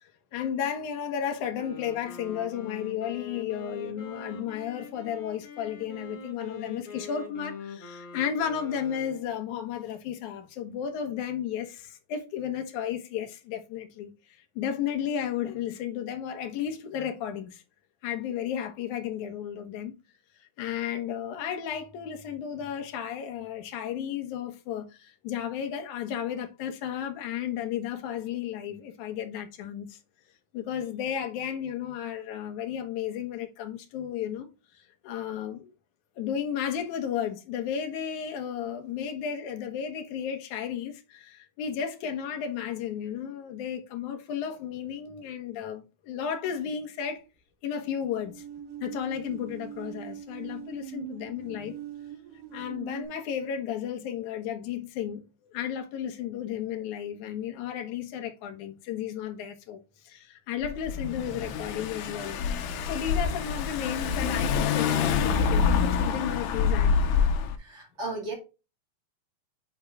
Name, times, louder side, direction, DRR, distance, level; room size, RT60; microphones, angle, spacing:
voice 1, 0.0-17.6 18.0-19.9 20.6-30.0 30.5-34.5 34.7-35.7 36.2-47.2 47.6-48.4 48.8-51.7 52.5-59.8 60.0-62.4 62.8-67.0, left 9 dB, 65° left, 2.3 m, -33 dB
Wind instrument woodwind instrument, 1.5-9.4, left 4 dB, 45° left, 2.5 m, -43 dB
sound 1, 48.2-53.1, right 9 dB, 75° right, 2.5 m, -42 dB
Car / Engine, 60.6-67.6, left 6 dB, 80° left, 2.5 m, -26 dB
voice 2, 67.6-68.3, right 2 dB, 25° right, 1.7 m, -35 dB
10.5 x 4.3 x 2.4 m
omnidirectional pair, 4.0 m